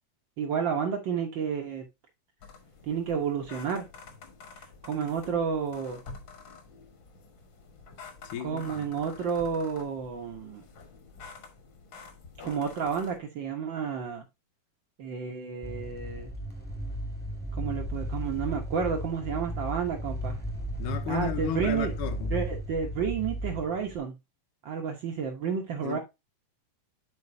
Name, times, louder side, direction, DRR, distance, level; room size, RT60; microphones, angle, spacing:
voice 1, 0.4-1.9 2.8-3.9 4.8-6.0 8.4-10.6 12.4-14.2 15.0-16.3 17.6-20.4 21.1-21.9 22.3-24.1 24.6-26.0, right 6 dB, 80° right, 1.0 m, -31 dB
sound 1, 2.4-13.2, left 4 dB, 55° left, 1.3 m, -49 dB
voice 2, 8.3-8.9 20.8-22.4 25.8-26.0, left 10 dB, 75° left, 2.1 m, -34 dB
sound 2, 15.6-24.0, equal, 10° left, 0.6 m, -35 dB
10.5 x 4.2 x 2.7 m
omnidirectional pair, 3.8 m